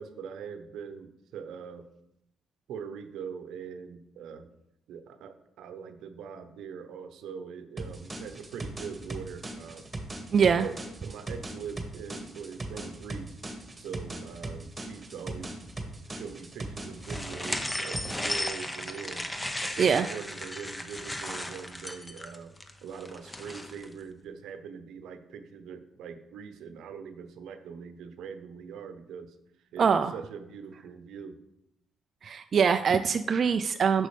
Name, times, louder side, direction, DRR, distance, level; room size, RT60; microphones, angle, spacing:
voice 1, 0.0-1.8 2.7-4.5 4.9-9.9 10.3-10.7 11.0-13.4 13.8-15.6 16.0-19.2 19.6-22.5 22.8-29.3 29.7-31.4, right 6 dB, 80° right, 8 dB, 0.8 m, -42 dB
sound 1, 7.8-18.4, right 2 dB, 20° right, 1.5 m, -39 dB
voice 2, 10.3-10.7 19.8-20.1 29.8-30.1 32.2-34.1, right 6 dB, 50° right, 8 dB, 0.3 m, -23 dB
sound 2, 17.0-23.9, left 1 dB, 10° left, 0.8 m, -35 dB
8.3 x 6.3 x 3.3 m, 0.81 s
cardioid pair, 90°, 0 cm